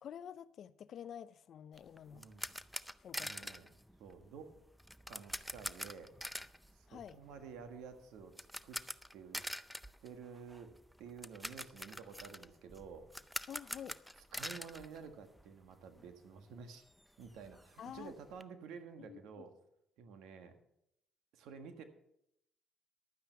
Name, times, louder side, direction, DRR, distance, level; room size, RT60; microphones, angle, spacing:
voice 1, 0.0-2.2 3.0-3.5 6.9-7.2 13.5-14.0 17.8-18.1 19.0-19.5, left 9 dB, 60° left, 0.5 m, -49 dB
sound 1, 1.7-15.7 16.0-16.1 16.5-16.6 16.9-18.4, equal, ahead, 0.5 m, -46 dB
voice 2, 2.1-2.5 3.2-3.7 4.0-4.5 5.1-6.1 6.7-8.3 8.6-8.8 9.1-9.4 10.0-10.7 11.0-13.1 14.3-16.8 17.2-19.5 20.0-20.5 21.3-21.8, right 6 dB, 85° right, 1.6 m, -51 dB
11.5 x 9.3 x 5.8 m
cardioid pair, 90°, 0 cm